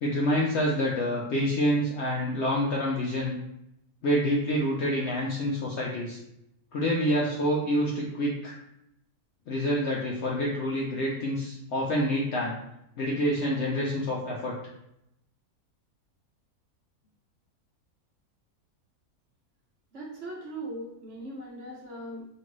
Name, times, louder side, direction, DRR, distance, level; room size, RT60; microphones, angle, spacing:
voice 1, 0.0-3.4 4.0-6.2 6.7-8.5 9.5-12.6 13.0-14.5, equal, 65° left, -4 dB, 0.7 m, -27 dB
voice 2, 19.9-22.3, right 1 dB, 60° right, -3 dB, 1.0 m, -39 dB
3.0 x 2.5 x 3.0 m, 0.81 s
omnidirectional pair, 1.6 m